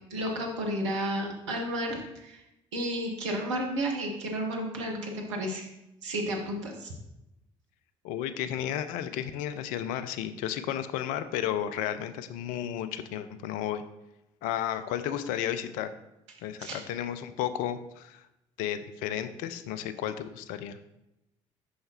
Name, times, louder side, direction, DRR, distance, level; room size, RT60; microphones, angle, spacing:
voice 1, 0.1-2.4 2.7-5.7 6.0-6.9 16.6-16.8, right 1 dB, 75° right, 1 dB, 1.0 m, -32 dB
voice 2, 8.0-13.8 14.4-15.9 16.4-18.2 18.6-20.8, left 10 dB, 60° left, 11 dB, 0.5 m, -33 dB
6.4 x 5.6 x 2.9 m, 0.88 s
figure-of-eight pair, 50°, 16 cm